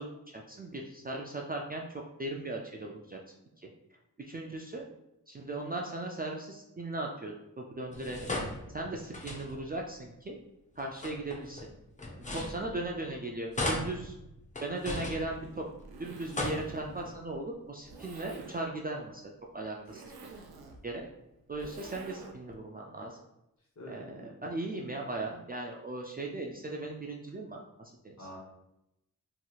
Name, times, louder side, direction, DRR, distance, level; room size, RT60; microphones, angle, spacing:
voice 1, 0.0-3.2 3.6-3.7 4.2-4.9 5.3-8.2 8.7-10.4 10.8-11.7 12.3-14.1 14.6-15.6 16.0-19.2 19.5-20.0 20.8-21.1 21.5-23.2 23.9-28.3, right 2 dB, 25° right, -1 dB, 0.3 m, -38 dB
sound 1, 7.9-9.8 10.8-13.1 13.5-15.8 16.2-17.2, left 1 dB, 20° left, 0.6 m, -38 dB
voice 2, 12.2-12.6 23.8-24.2 28.2-28.4, equal, 45° left, -3 dB, 1.1 m, -47 dB
Zipper (clothing), 14.7-22.6, right 3 dB, 90° right, 0.5 m, -50 dB
2.9 x 2.7 x 2.3 m, 0.86 s
cardioid pair, 55°, 36 cm